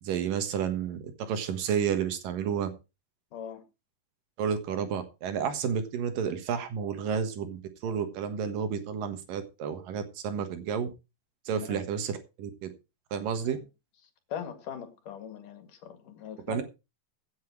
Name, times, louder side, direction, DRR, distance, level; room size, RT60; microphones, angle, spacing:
voice 1, 0.0-2.7 4.4-10.9 11.5-12.7 13.1-13.6 16.5-16.6, right 7 dB, 75° right, 3.2 m, -31 dB
voice 2, 3.3-3.6 11.5-11.8 13.5-13.6 14.3-16.6, left 8 dB, 70° left, 3.5 m, -41 dB
16.0 x 8.1 x 4.6 m
omnidirectional pair, 3.9 m